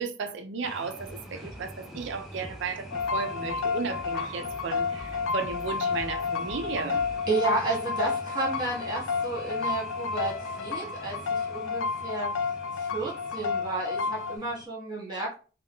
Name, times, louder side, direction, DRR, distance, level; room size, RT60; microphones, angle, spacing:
voice 1, 0.0-7.0, right 4 dB, 60° right, 0.4 m, -34 dB
sound 1, 0.6-14.7, equal, ahead, 0.4 m, -46 dB
sound 2, 1.0-7.1, equal, 25° left, 1.2 m, -47 dB
sound 3, 2.9-14.4, left 5 dB, 70° left, 0.3 m, -31 dB
voice 2, 7.3-12.3 12.7-15.3, right 2 dB, 20° right, 1.3 m, -32 dB
3.6 x 2.2 x 2.3 m
head